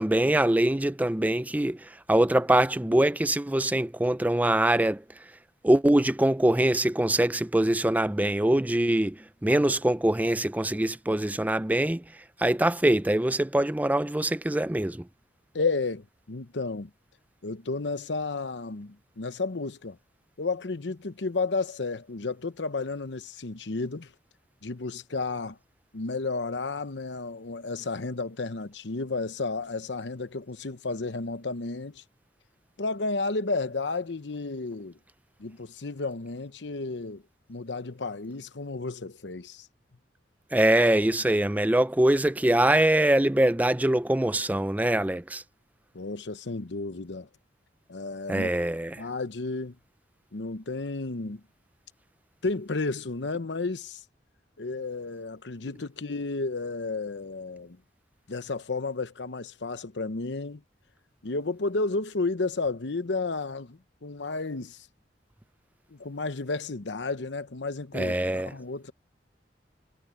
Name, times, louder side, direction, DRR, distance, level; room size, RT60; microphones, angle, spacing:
voice 1, 0.0-5.0 5.6-12.0 12.4-15.0 40.5-45.4 48.3-49.0 67.9-68.5, right 1 dB, 10° right, 0.5 m, -23 dB
voice 2, 15.5-16.9 17.4-20.0 20.4-24.1 24.6-25.6 25.9-32.0 32.8-35.0 35.4-37.2 37.5-39.7 45.9-47.3 47.9-48.5 49.0-49.8 50.3-51.4 52.4-54.0 54.6-57.8 58.3-60.6 61.2-64.8 65.9-68.9, left 3 dB, 75° left, 0.9 m, -32 dB
head